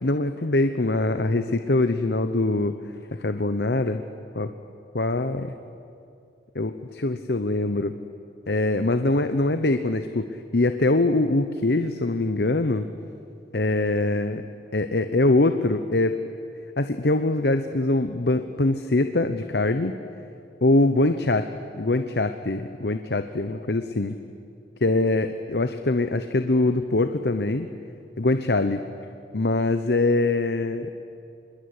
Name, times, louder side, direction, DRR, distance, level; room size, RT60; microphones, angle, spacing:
voice 1, 0.0-2.8 3.2-4.0 4.3-4.5 4.9-5.5 6.5-7.9 8.5-12.9 13.5-14.4 14.7-16.2 16.8-19.9 20.6-24.2 24.8-27.7 28.2-28.8 29.3-31.0, left 2 dB, 65° left, 9 dB, 1.0 m, -23 dB
25.5 x 21.5 x 9.8 m, 2.5 s
head